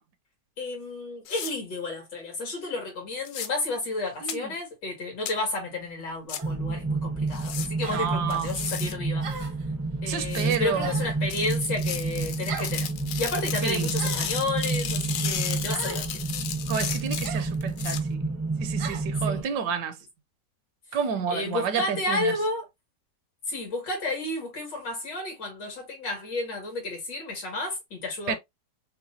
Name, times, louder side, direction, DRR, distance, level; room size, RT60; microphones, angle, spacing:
voice 1, 0.6-9.5 10.0-12.9 13.2-16.1 19.2-19.4 21.3-22.7 23.5-28.4, left 2 dB, 90° left, 2.7 m, -31 dB
sound 1, 1.3-1.5 3.2-3.5 4.3-4.4 5.3-5.4 6.3-6.4 7.3-7.7 8.3-8.9 10.3-10.6 11.3-18.0, left 9 dB, 70° left, 1.1 m, -34 dB
voice 2, 4.2-4.5 7.9-8.5 10.1-10.9 13.6-13.9 16.7-18.2 18.6-20.0 20.9-22.3 28.3-28.4, right 7 dB, 75° right, 1.2 m, -30 dB
Glass Shower Screen Contact Mic Recording, 6.4-19.4, right 3 dB, 25° right, 0.3 m, -30 dB
sound 2, 6.4-6.6 7.8-8.1 9.2-9.6 10.8-11.2 12.5-12.8 13.9-14.4 15.7-16.0 17.2-17.5 18.8-19.1, right 5 dB, 55° right, 0.7 m, -38 dB
6.0 x 2.2 x 2.6 m
omnidirectional pair, 1.9 m